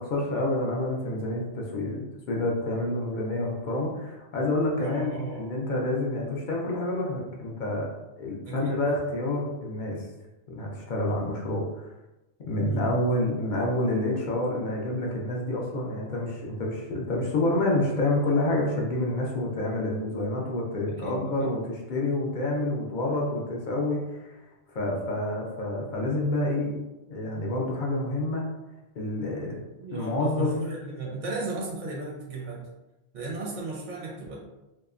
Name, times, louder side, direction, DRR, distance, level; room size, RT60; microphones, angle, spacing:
voice 1, 0.0-7.9 8.2-10.1 10.5-11.8 12.4-24.4 24.7-26.8 27.1-28.5 29.0-29.6 29.9-30.5, left 1 dB, 55° left, -2 dB, 0.5 m, -28 dB
voice 2, 4.7-5.5 8.4-8.8 12.5-12.9 20.9-21.5 29.8-32.7 33.1-34.4, right 3 dB, 55° right, -3 dB, 0.6 m, -35 dB
2.7 x 2.1 x 2.4 m, 0.99 s
omnidirectional pair, 1.2 m